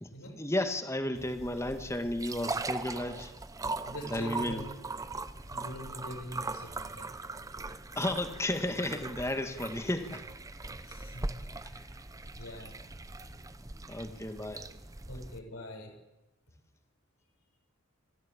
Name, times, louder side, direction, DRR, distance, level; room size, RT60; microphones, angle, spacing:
voice 1, 0.3-3.3 4.0-4.6 8.0-10.2 13.9-14.7, left 1 dB, 15° left, 8 dB, 1.7 m, -33 dB
sound 1, 1.2-15.4, right 3 dB, 15° right, 0.8 m, -40 dB
voice 2, 3.9-4.7 5.5-7.1 10.9-11.8 12.4-12.7 14.1-14.2 15.1-15.9, left 1 dB, 75° left, 1 dB, 6.9 m, -43 dB
26.5 x 15.0 x 8.7 m, 1.0 s
head